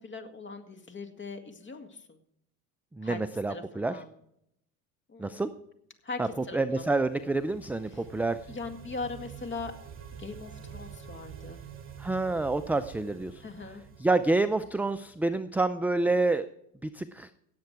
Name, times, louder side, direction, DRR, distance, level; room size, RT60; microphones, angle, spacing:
voice 1, 0.0-2.2 3.0-3.2 3.5-4.1 5.1-5.5 6.0-6.8 7.1-7.3 7.9-8.0 8.5-9.7 10.2-11.6 13.4-13.8, left 4 dB, 25° left, 6 dB, 2.0 m, -40 dB
voice 2, 2.9-4.0 5.2-5.5 6.2-6.3 6.5-8.4 12.0-13.4 14.0-16.5 16.8-17.3, right 2 dB, 5° right, 10 dB, 0.4 m, -28 dB
sound 1, 6.5-15.2, right 8 dB, 30° right, 2.5 m, -48 dB
17.5 x 7.8 x 4.7 m, 0.75 s
hypercardioid pair, 85°, 44 cm